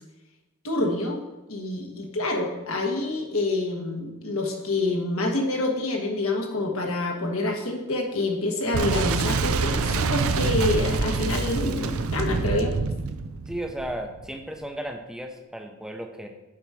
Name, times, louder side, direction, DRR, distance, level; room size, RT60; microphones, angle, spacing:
voice 1, 0.6-1.2 1.5-12.7, left 2 dB, 75° left, 1 dB, 1.4 m, -27 dB
Boom, 8.7-14.3, right 4 dB, 85° right, 0.5 m, -26 dB
voice 2, 13.5-16.3, right 1 dB, 5° right, 4 dB, 0.7 m, -34 dB
7.4 x 4.9 x 5.6 m, 1.1 s
head